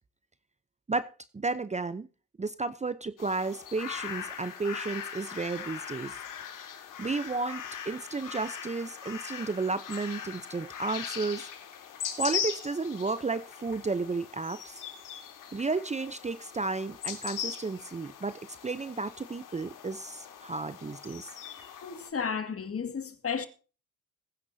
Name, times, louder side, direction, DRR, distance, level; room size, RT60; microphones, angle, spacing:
voice 1, 0.9-2.1 2.4-6.2 7.0-11.5 12.2-14.8 15.5-21.4, right 3 dB, 20° right, 0.8 m, -33 dB
sound 1, 3.2-22.1, left 8 dB, 75° left, 3.4 m, -40 dB
voice 2, 21.8-23.5, left 6 dB, 45° left, 2.2 m, -33 dB
20.5 x 9.5 x 2.8 m
cardioid pair, 80°, 32 cm